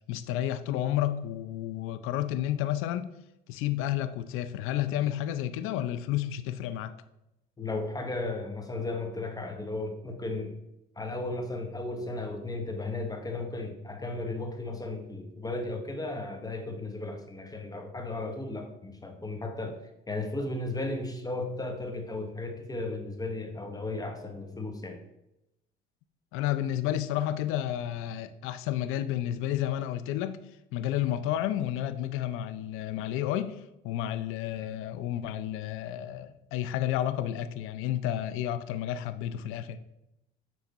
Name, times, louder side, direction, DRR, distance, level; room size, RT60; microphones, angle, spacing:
voice 1, 0.1-3.1 3.5-6.9 26.3-30.4 30.7-33.6 33.8-39.8, left 12 dB, 80° left, 0.5 m, -31 dB
voice 2, 7.6-10.6 11.0-19.8 20.1-25.0, left 2 dB, 15° left, 1.0 m, -35 dB
9.3 x 3.4 x 4.1 m
cardioid pair, 95°, 21 cm